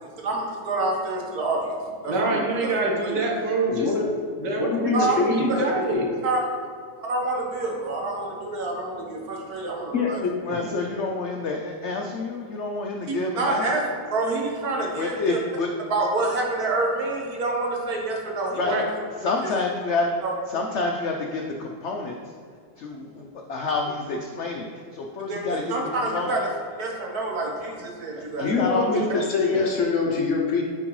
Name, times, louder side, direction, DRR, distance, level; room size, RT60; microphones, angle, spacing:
voice 1, 0.0-1.8 2.0-2.7 3.0-3.2 4.9-5.6 6.2-6.4 7.1-10.2 13.1-15.4 15.9-18.7 19.4-19.6 20.2-20.3 25.3-25.4 25.7-26.5 26.8-28.5, right 2 dB, 65° right, -1 dB, 1.6 m, -27 dB
voice 2, 2.1-3.9 4.4-6.1 18.6-18.8, right 2 dB, 85° right, -1 dB, 1.7 m, -25 dB
voice 3, 3.7-4.2 4.6-5.7 9.9-11.0 28.4-30.6, left 4 dB, 60° left, 0 dB, 0.9 m, -24 dB
voice 4, 10.4-13.8 15.0-15.7 18.5-18.7 19.2-20.1 20.5-22.2 22.8-26.4 28.1-29.7, left 3 dB, 80° left, 2 dB, 0.6 m, -29 dB
9.7 x 4.4 x 3.1 m, 2.2 s
omnidirectional pair, 1.8 m